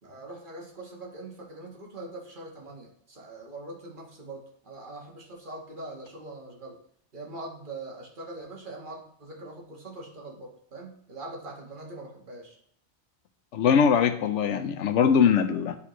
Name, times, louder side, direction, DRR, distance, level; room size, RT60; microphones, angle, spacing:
voice 1, 0.0-6.8 7.1-12.6, right 2 dB, 45° right, -1 dB, 1.6 m, -42 dB
voice 2, 13.5-15.8, left 7 dB, 90° left, 9 dB, 1.0 m, -22 dB
11.5 x 4.2 x 3.0 m, 0.68 s
omnidirectional pair, 1.2 m